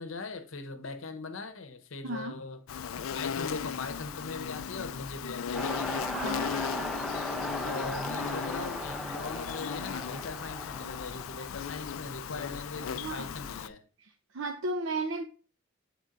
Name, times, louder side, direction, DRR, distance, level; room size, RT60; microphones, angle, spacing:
voice 1, 0.0-2.6 3.1-6.0 7.7-13.8, left 3 dB, 70° left, 0.8 m, -40 dB
voice 2, 2.0-2.4 6.1-6.5 12.9-13.3 14.3-15.2, right 2 dB, 65° right, 0.6 m, -34 dB
Insect, 2.7-13.7, left 7 dB, 85° left, 0.4 m, -37 dB
sound 1, 5.5-11.7, left 1 dB, ahead, 0.5 m, -37 dB
8.7 x 3.6 x 3.7 m
head